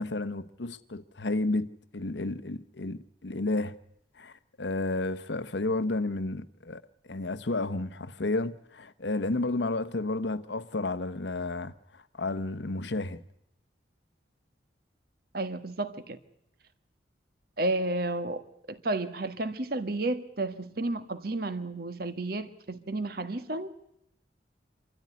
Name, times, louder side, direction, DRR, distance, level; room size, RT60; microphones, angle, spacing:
voice 1, 0.0-1.7 1.9-3.7 4.2-13.2, left 2 dB, 70° left, 1.0 m, -32 dB
voice 2, 15.3-16.2 17.6-18.4 18.7-23.7, right 2 dB, 55° right, 1.5 m, -32 dB
25.0 x 13.5 x 9.5 m
head